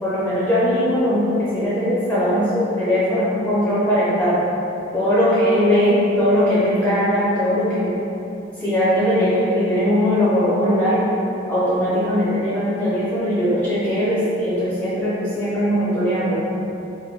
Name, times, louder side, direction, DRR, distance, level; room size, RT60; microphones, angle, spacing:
voice 1, 0.0-4.4 4.9-8.0 8.6-11.0 11.5-16.4, equal, 10° left, -10 dB, 0.6 m, -20 dB
3.8 x 2.1 x 3.6 m, 2.8 s
head